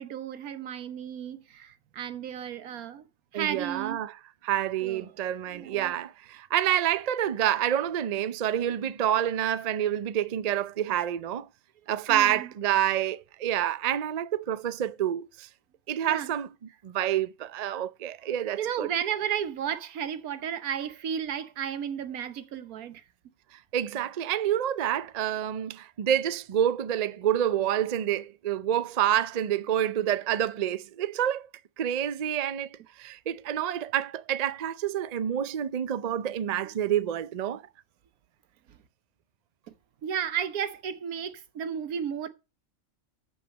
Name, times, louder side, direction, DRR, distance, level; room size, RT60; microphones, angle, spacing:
voice 1, 0.0-3.1 3.3-4.0 4.8-5.1 5.5-6.0 12.1-12.5 16.0-16.3 18.6-23.0 36.6-36.7 38.7-38.8 39.7-39.8 40.0-42.3, right 9 dB, 90° right, 1.4 m, -33 dB
voice 2, 3.3-4.2 4.4-11.5 11.9-15.5 15.9-16.5 16.8-18.9 23.5-31.5 31.8-37.6, right 10 dB, 70° right, 0.4 m, -28 dB
8.6 x 7.5 x 6.2 m
omnidirectional pair, 1.5 m